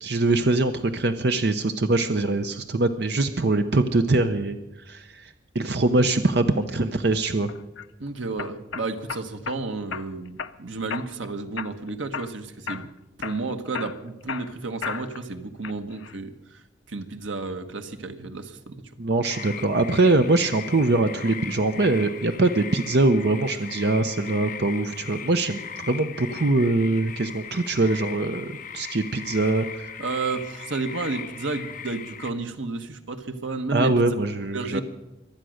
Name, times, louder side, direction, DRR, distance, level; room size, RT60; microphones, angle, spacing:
voice 1, 0.0-7.5 19.0-29.9 33.7-34.8, right 2 dB, 55° right, 8 dB, 0.7 m, -23 dB
sound 1, 7.5-7.9 8.4-9.6 9.9-10.5 10.9-11.3 11.6-12.4 12.7-12.9 13.2-15.2 15.6-16.2, left 6 dB, 80° left, 0.6 m, -34 dB
voice 2, 8.0-12.9 13.2-16.6 16.9-18.7 30.0-34.1 34.5-34.8, right 3 dB, 85° right, 7 dB, 1.3 m, -32 dB
sound 2, 19.3-32.3, left 8 dB, 45° left, 1.1 m, -39 dB
23.5 x 9.1 x 6.4 m, 1.0 s
head